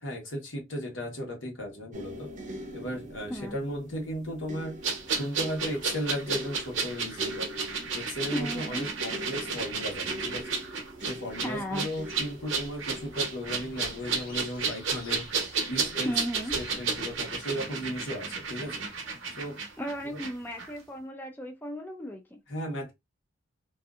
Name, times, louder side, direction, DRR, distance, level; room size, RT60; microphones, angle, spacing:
voice 1, 0.0-7.5 7.9-10.6 11.0-16.1 16.5-18.8 19.4-19.6 20.1-20.2 22.5-22.9, equal, 75° left, 1.3 m, -36 dB
sound 1, 1.9-15.0 15.8-16.0, left 1 dB, 40° right, 0.7 m, -44 dB
sound 2, 4.8-20.3 20.6-20.7, right 5 dB, 80° right, 0.8 m, -32 dB
voice 2, 8.3-8.8 11.4-11.9 16.0-16.5 19.8-22.4, equal, 10° left, 0.4 m, -35 dB
sound 3, 11.9-17.4, left 2 dB, 50° left, 1.2 m, -50 dB
2.6 x 2.5 x 2.3 m
head